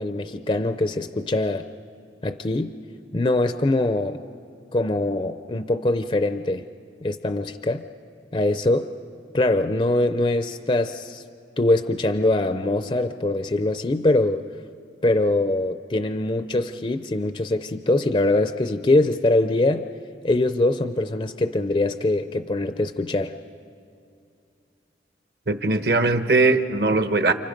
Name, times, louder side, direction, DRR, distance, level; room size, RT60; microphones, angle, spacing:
voice 1, 0.0-1.6 2.2-2.7 3.1-4.2 4.7-6.6 7.0-7.8 8.3-8.9 9.3-11.2 11.6-14.4 15.0-19.9 20.2-23.4, left 2 dB, 30° left, 0.5 m, -23 dB
voice 2, 25.5-27.3, right 3 dB, 60° right, 1.0 m, -20 dB
30.0 x 27.5 x 5.3 m
head